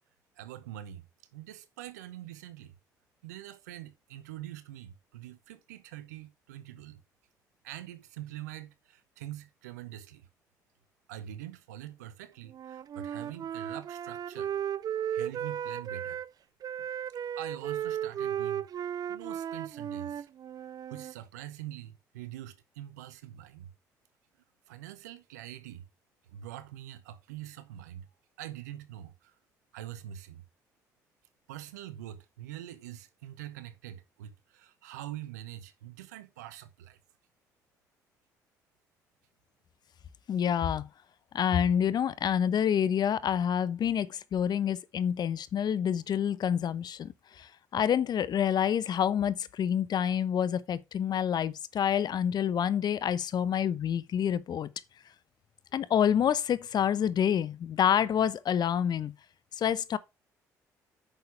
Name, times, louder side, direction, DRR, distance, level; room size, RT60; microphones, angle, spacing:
voice 1, 0.4-1.1 1.3-2.7 3.2-7.0 7.6-10.3 11.1-14.5 15.1-16.2 16.8-16.9 17.4-20.3 20.9-23.7 24.7-25.9 26.3-28.1 28.4-29.3 29.7-30.4 31.5-37.0, right 13 dB, 80° right, 0.8 m, -44 dB
Wind instrument woodwind instrument, 12.5-16.3 16.6-21.1, right 9 dB, 45° right, 0.5 m, -35 dB
voice 2, 40.3-40.9 41.3-54.7 55.7-59.1 59.6-60.0, left 8 dB, 50° left, 0.9 m, -28 dB
9.2 x 6.7 x 3.4 m
hypercardioid pair, 50°, 9 cm